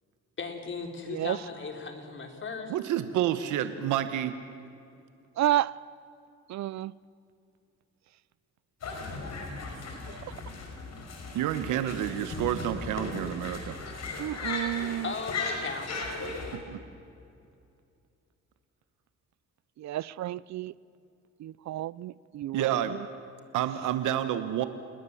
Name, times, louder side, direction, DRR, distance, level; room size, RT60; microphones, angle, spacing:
voice 1, 0.4-2.7 15.0-15.9, left 4 dB, 40° left, 3.9 m, -37 dB
voice 2, 2.7-4.3 11.3-13.8 16.5-16.8 22.5-23.0 23.5-24.7, right 11 dB, 85° right, 1.2 m, -29 dB
voice 3, 5.4-5.7 6.5-6.9 14.2-15.1 19.8-20.7 21.4-23.0, right 13 dB, 65° right, 0.6 m, -31 dB
sound 1, 8.8-16.6, left 3 dB, 60° left, 5.5 m, -37 dB
28.5 x 20.0 x 7.2 m
cardioid pair, 90°, 30 cm